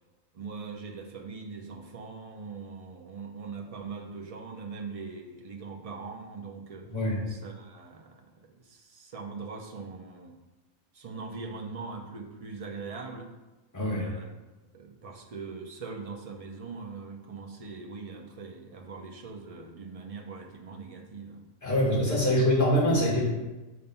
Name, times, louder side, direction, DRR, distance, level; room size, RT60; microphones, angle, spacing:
voice 1, 0.3-6.8 7.3-10.4 10.9-13.3 13.9-14.3 14.7-21.4, right 4 dB, 45° right, 2 dB, 0.4 m, -41 dB
voice 2, 13.7-14.1 21.6-23.3, equal, 15° left, -5 dB, 1.6 m, -24 dB
6.9 x 2.6 x 5.4 m, 1.1 s
omnidirectional pair, 1.4 m